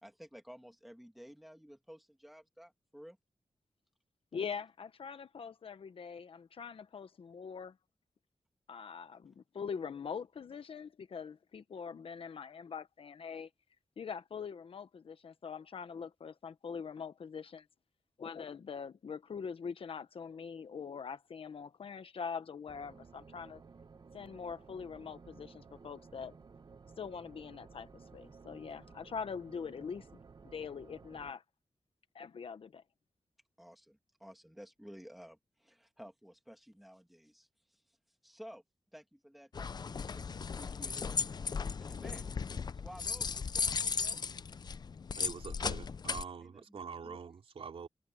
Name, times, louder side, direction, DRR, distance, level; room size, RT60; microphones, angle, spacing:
voice 1, 0.0-3.2 33.6-37.8 38.2-38.6 38.9-41.1 41.8-42.3 42.7-44.2 46.4-47.2, equal, ahead, 2.4 m, -54 dB
voice 2, 4.3-7.8 8.7-13.5 14.0-17.7 18.2-23.6 24.1-26.3 27.0-31.4 32.1-32.8, left 6 dB, 70° left, 1.2 m, -43 dB
sound 1, 22.7-31.3, right 4 dB, 45° right, 1.0 m, -56 dB
sound 2, 39.5-46.2, left 5 dB, 45° left, 0.5 m, -36 dB
voice 3, 45.2-47.9, right 6 dB, 75° right, 3.6 m, -45 dB
wide cardioid pair, 135°, 10 cm